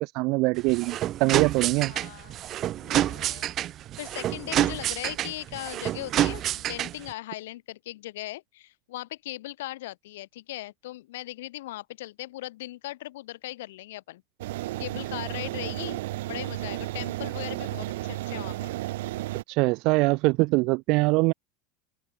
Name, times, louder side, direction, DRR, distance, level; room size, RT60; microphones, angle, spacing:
voice 1, 0.0-1.9 19.5-21.3, right 25 dB, 50° right, 0.9 m, -23 dB
sound 1, 0.6-7.1, right 12 dB, 30° right, 0.4 m, -28 dB
voice 2, 1.8-2.4 2.8-3.5 4.0-14.2 14.8-16.0 16.3-18.7, left 16 dB, 85° left, 5.8 m, -39 dB
sound 2, 14.4-19.4, right 17 dB, 85° right, 0.9 m, -33 dB
open air
supercardioid pair, 160°, 0 cm